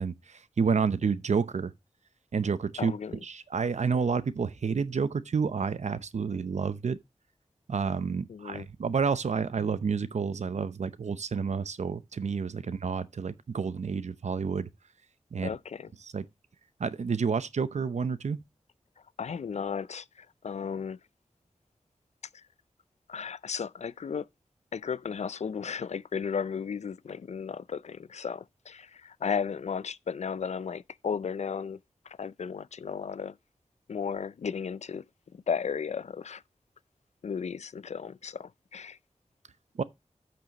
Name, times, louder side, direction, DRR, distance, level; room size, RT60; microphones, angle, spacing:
voice 1, 0.0-1.7 2.3-2.9 3.2-7.0 7.7-14.7 15.3-15.5 16.0-16.2 16.8-18.4 39.8-39.9, right 5 dB, 80° right, 0.7 m, -29 dB
voice 2, 2.8-3.1 8.3-8.7 12.6-12.7 15.4-15.9 19.2-21.0 22.3-22.4 23.1-24.3 24.7-31.8 32.1-33.4 33.9-35.0 35.3-36.4 37.2-39.0, left 6 dB, 75° left, 0.4 m, -34 dB
14.0 x 6.1 x 2.9 m
wide cardioid pair, 90°, 12 cm